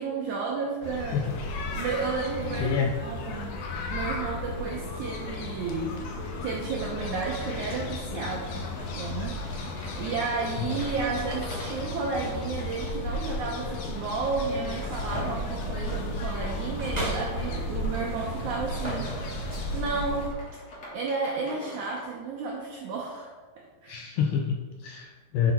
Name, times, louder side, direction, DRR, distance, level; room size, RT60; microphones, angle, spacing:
voice 1, 0.0-1.3 1.7-3.6 3.9-6.0 6.4-20.3 20.9-23.3 23.6-24.0, right 4 dB, 80° right, -1 dB, 1.7 m, -32 dB
sound 1, 0.8-20.3, left 2 dB, 70° left, 2.1 m, -34 dB
voice 2, 2.6-2.9 10.6-10.8 23.9-25.5, left 7 dB, 90° left, 2 dB, 1.9 m, -28 dB
sound 2, 8.5-22.1, left 1 dB, 40° left, 1.6 m, -46 dB
sound 3, 14.7-19.8, right 1 dB, 45° right, 0.5 m, -38 dB
10.5 x 4.9 x 4.3 m, 1.5 s
omnidirectional pair, 4.5 m